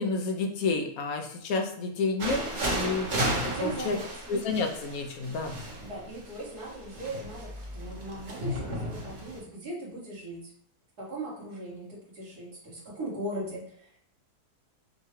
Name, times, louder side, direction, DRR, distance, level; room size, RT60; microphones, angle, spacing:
voice 1, 0.0-3.1 3.5-4.0 4.3-5.6, left 3 dB, 70° left, 4 dB, 1.1 m, -30 dB
sound 1, 2.2-9.4, right 1 dB, 35° right, 0.9 m, -34 dB
voice 2, 3.5-4.1 5.8-10.5 11.0-14.0, right 1 dB, 80° right, -7 dB, 2.4 m, -39 dB
6.5 x 2.3 x 3.0 m, 0.63 s
omnidirectional pair, 1.7 m